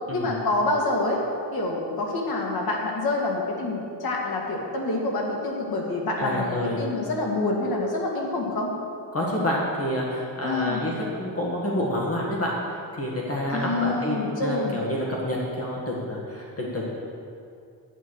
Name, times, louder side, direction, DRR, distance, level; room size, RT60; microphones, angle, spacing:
voice 1, 0.1-1.2 1.5-8.7 10.4-10.8 13.5-14.8, left 2 dB, 60° left, -1 dB, 2.1 m, -27 dB
voice 2, 6.2-6.8 9.1-12.5 13.0-16.9, left 1 dB, 35° left, -3 dB, 1.7 m, -28 dB
9.4 x 9.3 x 6.4 m, 2.5 s
wide cardioid pair, 150°, 42 cm